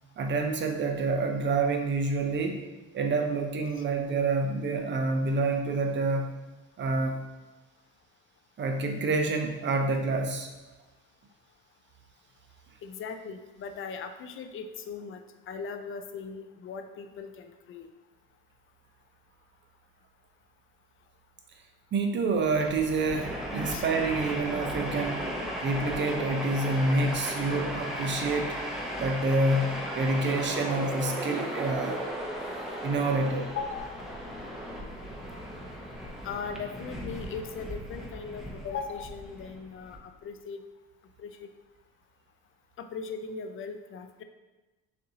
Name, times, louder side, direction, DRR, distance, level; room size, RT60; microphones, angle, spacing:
voice 1, 0.2-2.6 2.9-6.4 6.8-7.2 8.6-10.5 21.9-25.3 25.6-28.5 29.0-32.0 32.8-33.5, right 3 dB, 35° right, 4 dB, 0.7 m, -28 dB
voice 2, 12.8-17.9 23.7-23.9 33.5-33.9 36.2-40.6 41.2-41.5 42.8-44.2, left 5 dB, 40° left, 7 dB, 0.5 m, -39 dB
Train, 22.4-40.0, equal, ahead, 0.8 m, -36 dB
6.6 x 2.6 x 2.8 m, 1.1 s
supercardioid pair, 95°, 31 cm